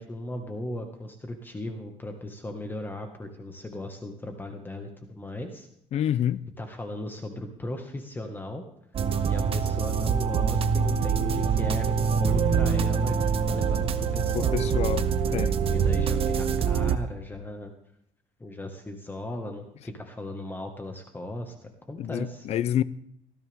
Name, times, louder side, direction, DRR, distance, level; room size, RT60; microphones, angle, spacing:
voice 1, 0.0-6.1 6.6-8.6 9.2-11.9 12.2-14.9 15.7-17.7 18.4-22.5, left 1 dB, 15° left, 1.8 m, -37 dB
voice 2, 5.9-6.4 14.3-15.0 15.3-15.5 22.0-22.8, left 10 dB, 50° left, 0.6 m, -27 dB
sound 1, 8.9-17.0, right 6 dB, 40° right, 1.1 m, -25 dB
19.5 x 14.0 x 3.7 m
cardioid pair, 125°, 14 cm